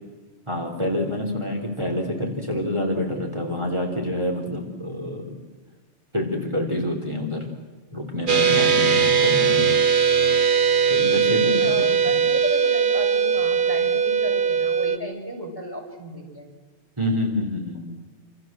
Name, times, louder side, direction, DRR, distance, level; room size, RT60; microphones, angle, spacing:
voice 1, 0.5-5.3 6.1-7.5 7.9-9.6 10.9-12.1 17.0-17.8, left 1 dB, 25° right, 1 dB, 3.9 m, -27 dB
sound 1, 8.3-15.0, right 6 dB, 45° right, 1.3 m, -20 dB
voice 2, 11.4-16.5, equal, 20° left, 1 dB, 5.8 m, -33 dB
28.0 x 28.0 x 7.6 m, 1.3 s
omnidirectional pair, 1.2 m